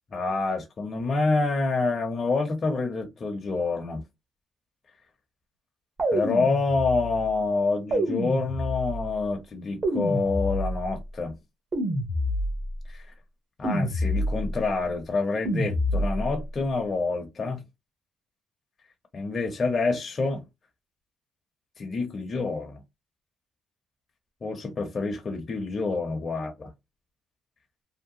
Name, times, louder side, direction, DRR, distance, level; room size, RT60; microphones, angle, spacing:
voice 1, 0.1-4.0 6.1-11.4 12.9-13.1 13.6-17.6 19.1-20.5 21.8-22.8 24.4-26.7, left 3 dB, 40° left, 0.8 m, -27 dB
sound 1, 6.0-7.2 7.9-9.1 9.8-10.9 11.7-12.7 13.6-14.6 15.4-16.3, equal, 45° right, 1.1 m, -27 dB
2.8 x 2.1 x 2.7 m
cardioid pair, 90°, 0 cm